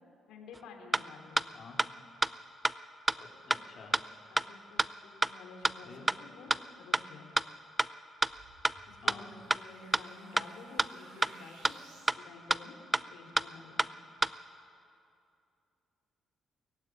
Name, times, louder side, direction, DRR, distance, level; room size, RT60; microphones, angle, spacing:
voice 1, 0.3-1.6 4.3-7.3 8.9-11.8 12.1-12.8 13.1-13.9, left 4 dB, 85° left, 2 dB, 3.0 m, -51 dB
sound 1, 0.5-0.6 0.9-1.0 1.4-1.5 1.8-1.9 2.2-2.3 2.6-2.7 3.1-3.2 3.5-3.6 3.9-4.0 4.4-4.5 4.8-4.9 5.2-5.3 5.6-5.7 6.1-6.2 6.5-6.6 6.9-7.0 7.4-7.5 7.8-7.9 8.2-8.3 8.6-8.7 9.1-9.2 9.5-9.6 9.9-10.0 10.4-10.5 10.8-10.9 11.2-11.3 11.6-11.7 12.1-12.2 12.5-12.6 12.9-13.0 13.4-13.5 13.8-13.9 14.2-14.3, right 2 dB, 15° right, 0.5 m, -27 dB
voice 2, 3.2-4.0 5.8-6.1 9.0-9.4, left 4 dB, 50° left, 0 dB, 4.0 m, -50 dB
sound 2, 8.2-12.2, right 3 dB, 90° right, 6.3 m, -58 dB
21.0 x 15.5 x 9.7 m, 2.6 s
cardioid pair, 90°, 0 cm